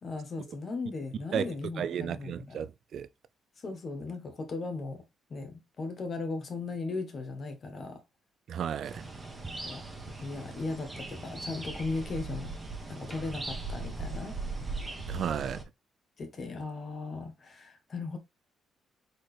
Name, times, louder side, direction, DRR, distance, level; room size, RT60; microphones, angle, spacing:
voice 1, 0.0-2.7 3.6-5.0 5.3-8.0 9.7-9.8 10.2-12.5 12.9-14.4 16.2-18.2, left 3 dB, 45° left, 1.3 m, -37 dB
voice 2, 1.8-3.1 8.5-9.0 15.1-15.6, right 8 dB, 65° right, 0.3 m, -33 dB
sound 1, 8.8-15.6, right 3 dB, 20° right, 1.3 m, -39 dB
4.1 x 3.9 x 3.3 m
cardioid pair, 90°, 0 cm